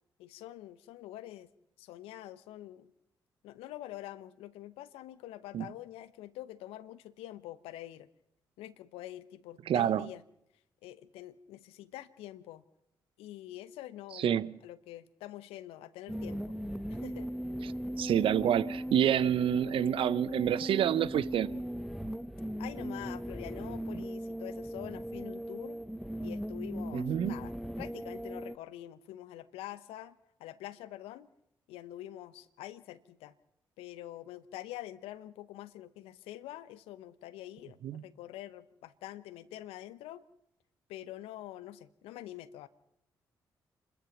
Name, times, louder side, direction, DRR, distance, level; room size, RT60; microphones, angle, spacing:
voice 1, 0.2-1.5 1.8-2.9 3.4-8.1 8.6-10.2 10.8-12.6 13.2-16.4 16.9-17.3 22.6-25.8 26.2-31.3 31.7-33.3 33.8-40.2 40.9-42.7, left 14 dB, 80° left, 0.9 m, -46 dB
voice 2, 9.7-10.1 14.2-14.5 18.0-21.6 26.9-27.3 37.8-38.0, right 10 dB, 65° right, 0.7 m, -28 dB
sound 1, 16.1-28.6, equal, ahead, 0.7 m, -38 dB
27.5 x 13.5 x 7.2 m
hypercardioid pair, 45°, 10 cm